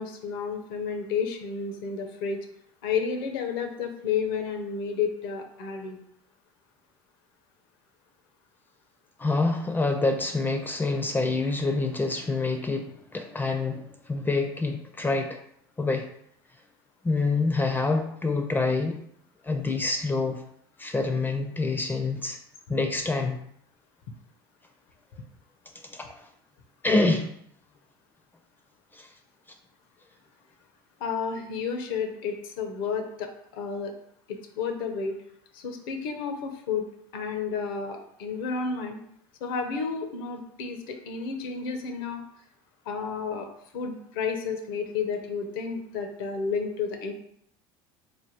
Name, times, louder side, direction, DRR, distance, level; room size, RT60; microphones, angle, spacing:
voice 1, 0.0-2.4 2.8-6.0 31.0-33.9 34.3-35.1 35.5-36.9 37.1-39.0 39.4-42.2 42.9-43.5 43.7-47.1, left 5 dB, 75° left, 5 dB, 0.7 m, -31 dB
voice 2, 9.2-15.4 15.8-16.1 17.0-19.0 19.4-20.4 20.8-22.4 22.7-23.4 25.9-26.2 26.8-27.3 28.9-29.1, left 3 dB, 15° left, 5 dB, 0.5 m, -26 dB
3.3 x 2.2 x 4.4 m, 0.69 s
hypercardioid pair, 85°, 11 cm